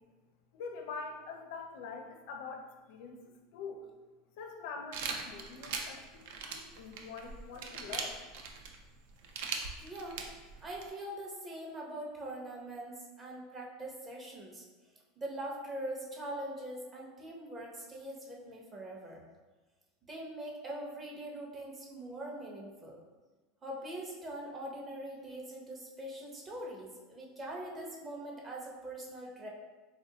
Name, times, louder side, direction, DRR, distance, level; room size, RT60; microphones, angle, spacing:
voice 1, 0.5-3.2 3.5-3.8 4.4-8.2, left 4 dB, 65° left, 3 dB, 0.4 m, -44 dB
sound 1, 4.9-10.9, right 5 dB, 75° right, 0.4 m, -40 dB
voice 2, 9.8-10.2 10.6-14.6 15.2-19.2 20.0-23.0 23.6-29.5, right 1 dB, 20° right, -2 dB, 0.6 m, -42 dB
3.5 x 2.5 x 2.7 m, 1.3 s
supercardioid pair, 140°, 0 cm